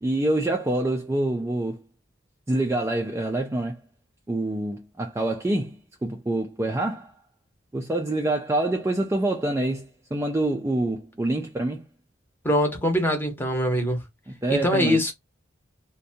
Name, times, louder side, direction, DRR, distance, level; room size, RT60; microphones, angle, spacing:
voice 1, 0.0-1.8 2.5-3.8 4.3-5.8 6.0-7.1 7.7-11.8 14.4-15.0, right 2 dB, 15° right, 0.3 m, -26 dB
voice 2, 12.4-14.0 14.5-15.1, equal, 10° left, 0.7 m, -23 dB
2.6 x 2.2 x 2.7 m
head